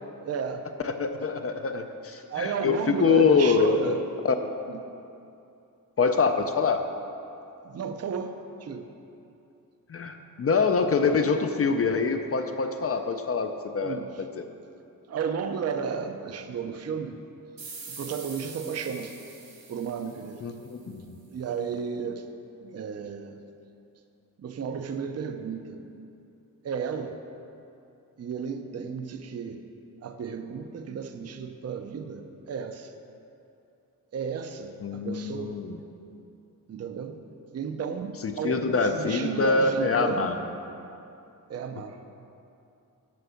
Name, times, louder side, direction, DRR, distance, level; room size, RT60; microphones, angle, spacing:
voice 1, 0.2-0.7 2.3-4.0 4.7-4.8 7.6-8.9 13.8-14.2 15.1-17.2 17.9-19.1 19.7-20.4 21.3-22.3 22.6-23.4 24.4-25.8 26.6-27.2 28.2-29.6 30.0-32.9 34.1-35.6 36.7-37.2 37.5-40.3 41.5-42.1, right 6 dB, 45° right, 7 dB, 0.5 m, -33 dB
voice 2, 0.8-4.0 4.2-4.3 6.0-6.8 9.9-14.3 20.4-21.0 34.8-35.8 38.2-40.4, left 4 dB, 40° left, 6 dB, 0.4 m, -25 dB
sound 1, 17.6-20.9, right 4 dB, 70° right, 1.7 m, -44 dB
7.7 x 5.9 x 6.9 m, 2.7 s
wide cardioid pair, 175°, 36 cm